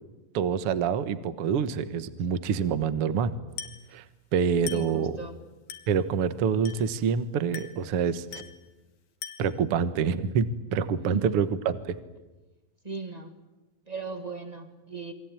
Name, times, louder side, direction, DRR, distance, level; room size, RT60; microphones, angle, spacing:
voice 1, 0.3-3.3 3.9-4.0 4.3-5.1 5.9-8.4 9.4-11.5, right 7 dB, 55° right, 12 dB, 1.7 m, -26 dB
Glass, 3.6-3.9 4.7-5.0 5.7-6.0 6.6-7.0 7.5-7.9 8.3-8.7 9.2-9.6, left 8 dB, 75° left, 3.7 m, -41 dB
voice 2, 4.7-5.4 11.1-11.4 12.8-13.3 13.9-15.1, right 3 dB, 25° right, 7 dB, 0.9 m, -37 dB
29.0 x 23.0 x 9.1 m, 1.1 s
omnidirectional pair, 4.2 m